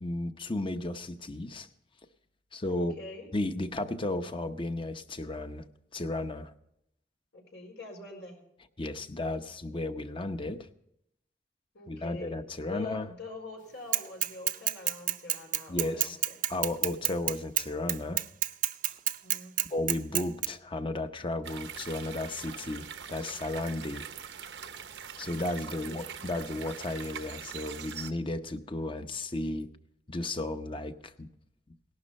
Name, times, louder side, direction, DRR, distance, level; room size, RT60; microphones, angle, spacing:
voice 1, 0.0-1.7 2.5-2.9 3.3-5.6 5.9-6.5 8.8-10.7 11.9-13.1 15.7-16.2 16.5-18.2 19.7-24.1 25.2-29.7 30.1-31.3, left 2 dB, 30° left, 9 dB, 0.8 m, -34 dB
voice 2, 2.7-3.3 7.3-8.4 11.7-12.4 12.7-16.4 19.2-19.9 25.7-26.1, left 3 dB, 85° left, 1 dB, 4.7 m, -44 dB
Bicycle / Mechanisms, 13.9-20.5, right 14 dB, 50° right, 0.6 m, -28 dB
sound 1, 21.4-28.1, right 7 dB, 90° right, 0.9 m, -43 dB
18.0 x 11.5 x 4.2 m, 0.78 s
head